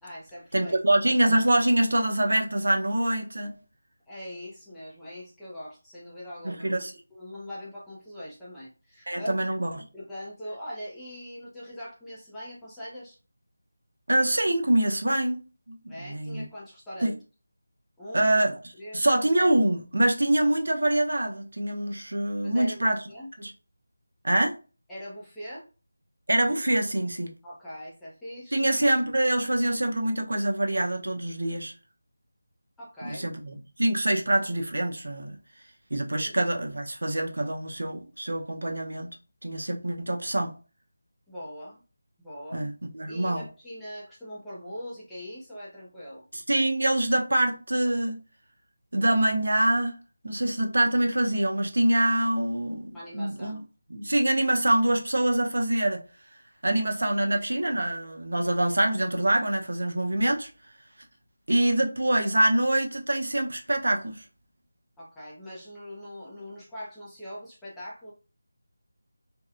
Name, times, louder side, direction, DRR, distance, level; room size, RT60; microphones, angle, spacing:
voice 1, 0.0-0.8 4.1-9.4 9.9-13.2 15.9-17.2 18.0-18.4 18.8-19.0 22.4-23.3 24.9-25.7 27.4-28.6 32.8-33.3 36.2-36.3 41.3-41.8 42.2-42.6 43.1-46.2 52.9-53.6 65.0-68.1, equal, 5° left, 0.4 m, -41 dB
voice 2, 0.5-3.5 6.4-6.9 9.1-9.8 14.1-16.5 17.0-17.1 18.1-18.6 18.9-23.0 23.4-23.5 24.2-24.5 26.3-27.3 28.5-31.7 33.0-35.4 35.9-39.1 39.4-40.5 42.5-43.5 46.3-48.2 48.9-49.9 50.2-52.8 53.1-53.6 53.9-56.0 56.6-60.5 61.5-64.2, right 1 dB, 75° right, 0.6 m, -25 dB
2.6 x 2.1 x 2.4 m
figure-of-eight pair, 180°, 0 cm